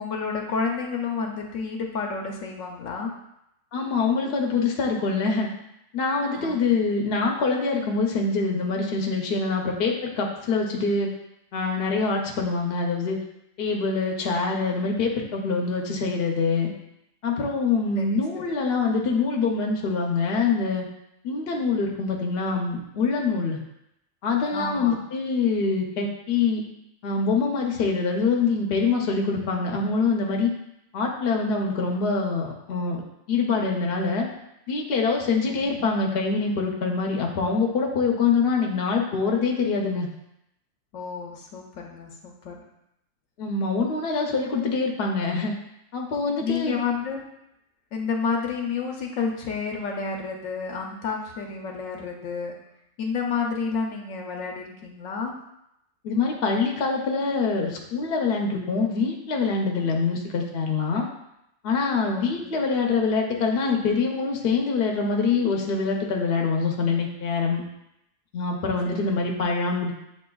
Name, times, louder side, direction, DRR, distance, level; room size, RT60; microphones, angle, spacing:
voice 1, 0.0-3.1 6.4-6.9 18.0-18.2 24.5-25.0 35.5-35.9 40.9-42.6 46.4-47.2 47.9-52.6 53.0-55.3 62.1-62.6 68.9-69.0, left 5 dB, 80° left, 1 dB, 1.0 m, -30 dB
voice 2, 3.7-5.5 5.9-11.1 11.5-13.2 13.6-16.7 17.2-20.9 21.2-23.6 24.2-26.6 27.0-30.5 30.9-33.0 33.3-34.3 34.7-40.1 43.4-45.5 45.9-46.7 56.0-61.1 61.6-67.6 68.3-69.9, left 4 dB, 55° left, 0 dB, 0.8 m, -25 dB
7.3 x 2.8 x 2.3 m, 0.81 s
omnidirectional pair, 1.4 m